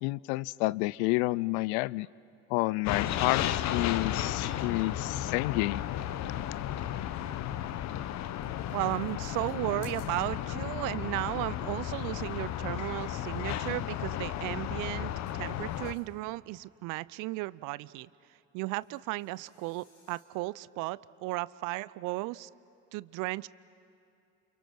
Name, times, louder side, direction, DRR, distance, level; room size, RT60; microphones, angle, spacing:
voice 1, 0.0-2.1 2.5-5.8, left 21 dB, 60° left, 22 dB, 0.5 m, -29 dB
sound 1, 2.8-15.9, left 11 dB, 45° left, 1.0 m, -34 dB
sound 2, 8.3-10.8 12.7-13.8 15.3-16.4 18.7-20.6, left 4 dB, 85° left, 5.0 m, -62 dB
voice 2, 8.7-18.1 18.5-22.5 22.9-23.5, right 20 dB, 55° right, 20 dB, 0.6 m, -35 dB
29.0 x 28.5 x 6.0 m, 2.7 s
hypercardioid pair, 65°, 38 cm